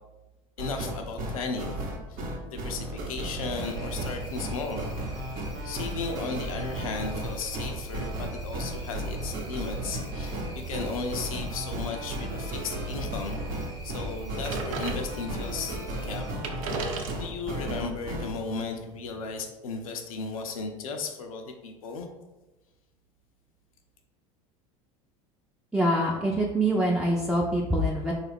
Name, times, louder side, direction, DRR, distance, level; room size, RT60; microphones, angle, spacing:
voice 1, 0.6-4.9 5.6-16.3 17.2-22.1, left 4 dB, 90° left, 5 dB, 0.4 m, -35 dB
my first song, 0.6-18.3, right 1 dB, 55° right, 0.9 m, -34 dB
sound 1, 3.6-16.3, right 2 dB, 20° right, 0.9 m, -41 dB
sound 2, 14.4-15.5 16.1-16.2 16.3-19.4, right 3 dB, 80° right, 0.5 m, -36 dB
voice 2, 25.7-28.1, right 1 dB, 5° right, -2 dB, 0.4 m, -25 dB
3.6 x 2.3 x 3.3 m, 1.1 s
hypercardioid pair, 85°, 17 cm